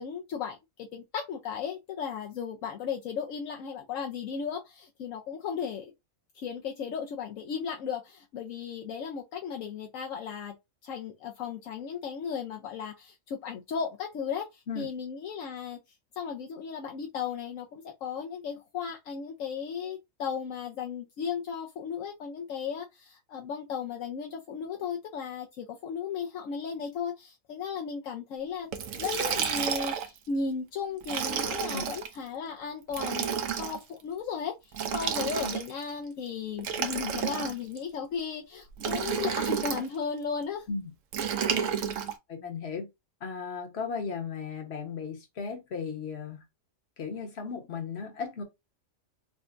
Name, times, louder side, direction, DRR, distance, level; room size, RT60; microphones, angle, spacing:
voice 1, 0.0-5.9 6.3-10.6 10.8-15.8 16.2-33.3 33.5-40.7, left 6 dB, 75° left, 1.0 m, -35 dB
Liquid, 28.7-30.2 31.0-32.1 32.9-33.8 34.7-35.8 36.6-37.8 38.8-39.9 41.1-42.1, right 8 dB, 70° right, 1.0 m, -31 dB
voice 2, 42.3-42.9 43.2-46.4 47.0-48.4, left 5 dB, 50° left, 1.3 m, -36 dB
5.1 x 2.3 x 2.5 m
omnidirectional pair, 1.4 m